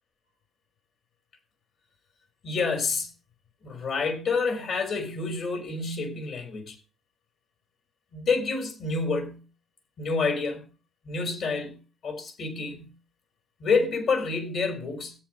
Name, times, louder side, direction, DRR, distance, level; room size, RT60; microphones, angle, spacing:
voice 1, 2.4-3.1 3.6-6.8 8.1-9.4 10.0-10.6 11.0-12.9 13.6-15.2, left 4 dB, 60° left, 4.3 m, -28 dB
17.0 x 8.8 x 3.1 m
cardioid pair, 90°, 0 cm